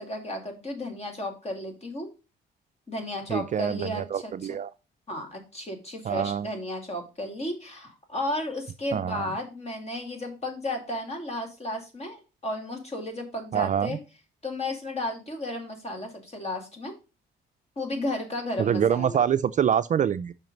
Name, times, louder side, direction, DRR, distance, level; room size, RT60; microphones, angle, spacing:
voice 1, 0.0-2.1 2.9-4.5 5.1-14.0 14.4-17.0 17.8-19.2, left 1 dB, 30° left, 2.4 m, -33 dB
voice 2, 3.3-4.7 6.0-6.5 8.9-9.3 13.5-14.0 18.6-20.3, right 8 dB, 40° right, 0.4 m, -25 dB
5.7 x 4.5 x 5.1 m
cardioid pair, 90°, 20 cm